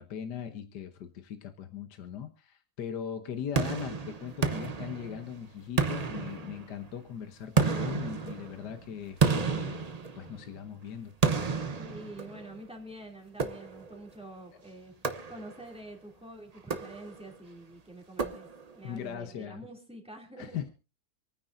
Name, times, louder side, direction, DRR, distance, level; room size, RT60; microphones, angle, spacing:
voice 1, 0.0-9.9 10.1-11.1 18.8-19.7 20.4-20.7, left 8 dB, 65° left, 7 dB, 1.6 m, -39 dB
sound 1, 3.6-5.4 5.8-6.9 7.6-10.6 11.2-12.6 13.4-14.0 15.0-15.8 16.6-17.4 18.2-18.9, right 5 dB, 35° right, 0.6 m, -31 dB
voice 2, 11.8-14.9 15.3-18.5 18.7-20.6, right 1 dB, 5° right, 1 dB, 2.8 m, -47 dB
27.5 x 9.5 x 2.6 m, 0.32 s
omnidirectional pair, 2.0 m